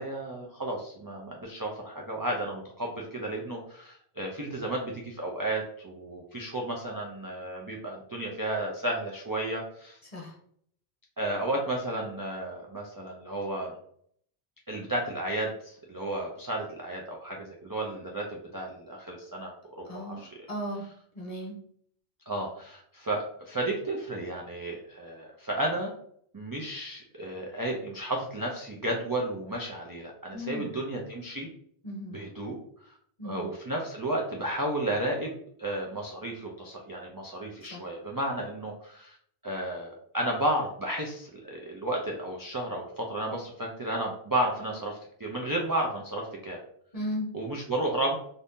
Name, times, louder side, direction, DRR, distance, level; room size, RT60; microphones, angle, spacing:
voice 1, 0.0-10.0 11.2-13.7 14.7-20.3 22.3-25.9 26.3-31.5 32.1-32.9 33.2-39.2 39.4-46.6 47.3-48.2, right 1 dB, 35° right, -2 dB, 0.3 m, -33 dB
voice 2, 19.9-20.8 21.1-21.6 30.3-30.8 31.8-32.2 33.2-33.5 37.7-37.9 46.9-47.3, equal, 40° left, -3 dB, 0.9 m, -36 dB
2.7 x 2.6 x 3.5 m, 0.65 s
omnidirectional pair, 1.0 m